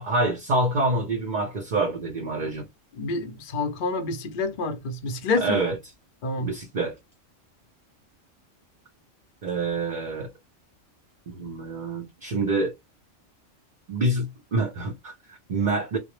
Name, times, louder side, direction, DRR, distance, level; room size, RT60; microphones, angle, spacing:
voice 1, 0.0-2.6 5.4-5.8 6.4-6.9 9.4-10.3 11.3-12.7 13.9-16.0, right 2 dB, 50° right, 0.6 m, -26 dB
voice 2, 3.0-5.6 6.2-6.5, left 3 dB, 50° left, 0.6 m, -28 dB
2.1 x 2.1 x 3.0 m
omnidirectional pair, 1.3 m